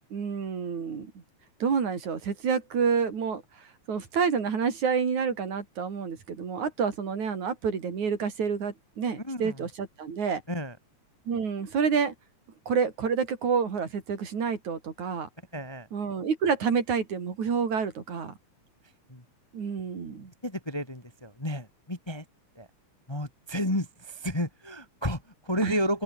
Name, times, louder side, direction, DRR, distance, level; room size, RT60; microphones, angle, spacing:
voice 1, 0.1-1.2 1.6-3.4 3.9-10.4 11.3-12.1 12.7-15.3 15.9-18.3 19.5-20.3 25.6-25.7, right 6 dB, 80° right, 4.9 m, -28 dB
voice 2, 9.2-9.6 10.5-10.8 15.5-15.9 19.1-19.2 20.4-22.2 22.5-22.7 23.1-26.0, equal, 10° left, 1.7 m, -31 dB
omnidirectional pair, 3.3 m